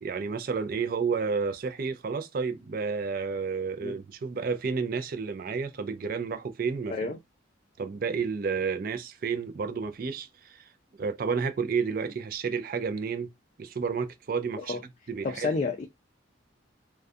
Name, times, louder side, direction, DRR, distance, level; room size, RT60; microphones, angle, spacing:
voice 1, 0.0-7.1 7.8-10.7 11.0-13.3 13.6-14.8 15.1-15.5, right 5 dB, 45° right, 0.3 m, -31 dB
voice 2, 15.2-15.8, left 4 dB, 35° left, 0.3 m, -30 dB
2.3 x 2.2 x 2.5 m
head